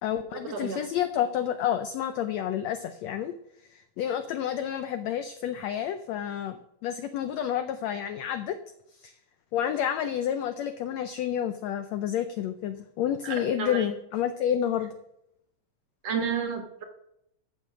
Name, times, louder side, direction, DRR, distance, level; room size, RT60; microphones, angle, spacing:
voice 1, 0.0-3.3 3.7-8.6 9.0-9.1 9.5-14.9, left 10 dB, 85° left, 9 dB, 1.5 m, -29 dB
voice 2, 13.2-13.9 16.0-16.8, right 6 dB, 60° right, 5 dB, 2.1 m, -31 dB
13.5 x 7.2 x 6.0 m, 0.79 s
omnidirectional pair, 3.8 m